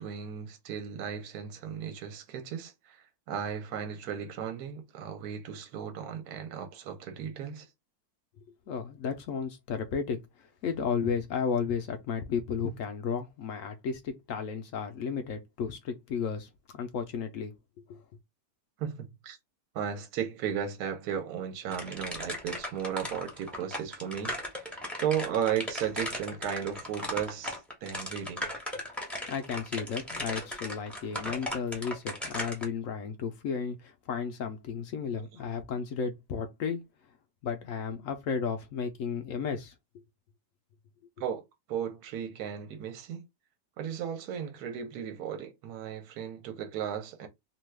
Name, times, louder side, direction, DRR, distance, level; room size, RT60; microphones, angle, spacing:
voice 1, 0.0-7.7 18.8-19.4 19.7-28.5 41.2-41.4 41.7-43.2 43.8-47.3, right 8 dB, 70° right, 1.2 m, -35 dB
voice 2, 8.7-17.5 17.9-18.0 29.0-36.8 37.4-39.7, left 6 dB, 70° left, 0.8 m, -33 dB
sound 1, 21.7-32.6, left 1 dB, ahead, 0.5 m, -37 dB
2.9 x 2.3 x 3.2 m
omnidirectional pair, 1.8 m